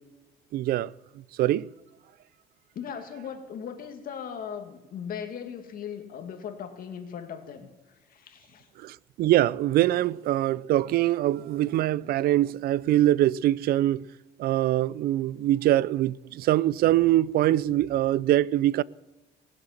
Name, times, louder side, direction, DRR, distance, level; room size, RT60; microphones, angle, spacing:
voice 1, 0.5-1.7 8.8-14.1 14.4-18.8, right 14 dB, 65° right, 0.4 m, -23 dB
voice 2, 2.7-7.7 8.1-8.7, left 7 dB, 60° left, 2.3 m, -38 dB
19.5 x 7.8 x 7.3 m
cardioid pair, 110°, 17 cm